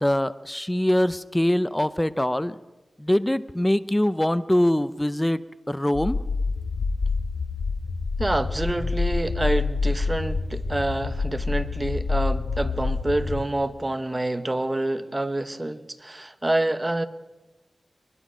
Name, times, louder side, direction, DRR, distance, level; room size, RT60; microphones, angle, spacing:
voice 1, 0.0-2.5 3.0-5.4 5.7-6.2, left 1 dB, 10° left, 14 dB, 0.6 m, -23 dB
sound 1, 5.9-13.4, left 4 dB, 85° left, 1.8 m, -27 dB
voice 2, 8.2-17.0, right 1 dB, 20° right, 10 dB, 1.1 m, -27 dB
23.0 x 21.0 x 6.3 m, 1.1 s
wide cardioid pair, 100°, 0 cm